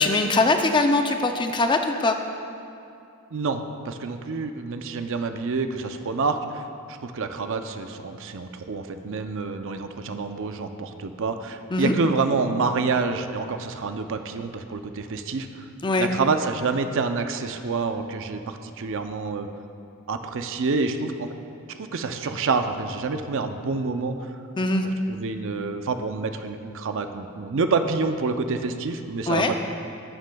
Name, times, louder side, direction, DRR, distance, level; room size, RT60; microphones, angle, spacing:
voice 1, 0.0-2.2 11.7-11.9 15.8-16.1 24.6-24.8 29.3-29.5, left 2 dB, 20° left, 5 dB, 0.4 m, -21 dB
voice 2, 3.3-15.5 16.0-19.5 20.1-21.3 21.7-24.3 25.1-29.5, right 4 dB, 60° right, 7 dB, 0.5 m, -27 dB
13.0 x 9.6 x 2.3 m, 2.5 s
head